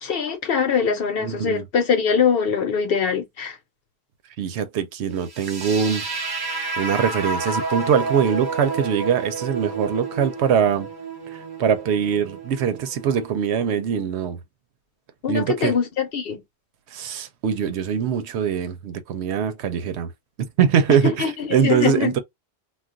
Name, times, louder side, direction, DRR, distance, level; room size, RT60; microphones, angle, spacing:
voice 1, 0.0-3.6 15.2-16.4 21.2-22.1, left 6 dB, 60° left, 0.9 m, -22 dB
voice 2, 1.2-1.7 4.4-6.0 6.8-10.9 11.3-14.4 15.3-15.8 16.9-20.1 20.4-22.2, right 7 dB, 75° right, 0.8 m, -22 dB
sound 1, 5.3-13.3, right 3 dB, 25° right, 0.6 m, -30 dB
2.3 x 2.2 x 3.7 m
omnidirectional pair, 1.1 m